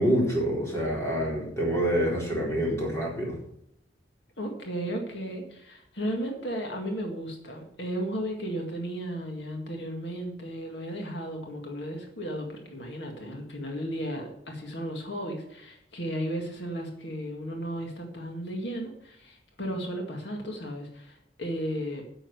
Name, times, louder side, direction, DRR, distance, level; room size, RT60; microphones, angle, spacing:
voice 1, 0.0-3.4, equal, 15° left, -4 dB, 4.1 m, -26 dB
voice 2, 4.4-22.0, equal, 75° left, 2 dB, 2.0 m, -34 dB
9.3 x 7.7 x 6.4 m, 0.76 s
head